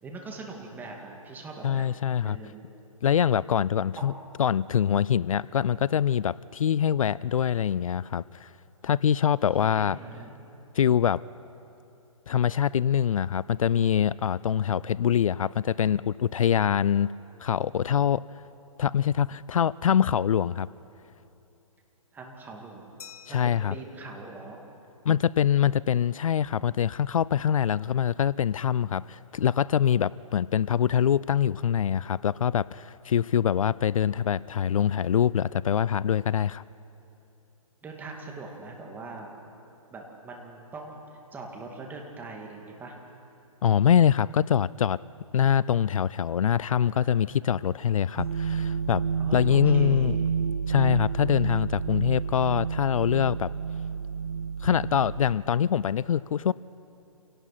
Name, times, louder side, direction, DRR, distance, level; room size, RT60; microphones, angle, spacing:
voice 1, 0.0-2.0 2.2-2.7 4.0-4.1 9.6-10.3 22.1-23.0 23.3-24.6 37.8-39.3 39.9-41.0 41.3-43.0 46.8-47.5 49.2-50.3, right 3 dB, 10° right, 0 dB, 2.4 m, -42 dB
voice 2, 1.6-2.4 3.0-4.1 4.4-8.5 8.8-10.0 10.7-11.2 12.3-17.1 17.4-18.2 18.8-20.7 23.3-23.7 25.1-36.6 43.6-45.0 45.3-49.0 49.3-50.2 50.7-53.5 54.6-56.5, left 9 dB, 65° left, 20 dB, 0.4 m, -24 dB
Glass, 23.0-25.5, left 7 dB, 85° left, 1.6 m, -52 dB
sound 1, 48.2-55.3, right 6 dB, 90° right, 0.7 m, -29 dB
27.5 x 18.0 x 5.9 m, 2.9 s
hypercardioid pair, 140°, 18 cm